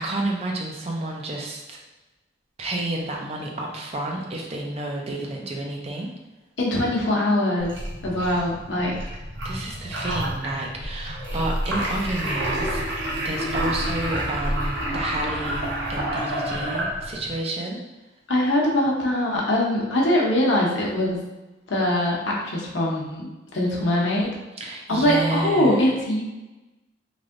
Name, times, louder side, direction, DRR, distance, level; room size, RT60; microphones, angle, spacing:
voice 1, 0.0-1.8 2.6-6.1 9.4-12.8 13.2-17.8 24.6-25.8, right 2 dB, 35° right, 0 dB, 0.5 m, -30 dB
voice 2, 6.6-7.7 8.0-9.0 18.3-21.2 21.7-23.3 23.5-24.3 24.9-26.2, left 1 dB, 75° left, -3 dB, 0.8 m, -22 dB
sound 1, 7.6-17.3, right 1 dB, 80° right, 0.8 m, -29 dB
3.3 x 2.6 x 2.5 m, 1.1 s
head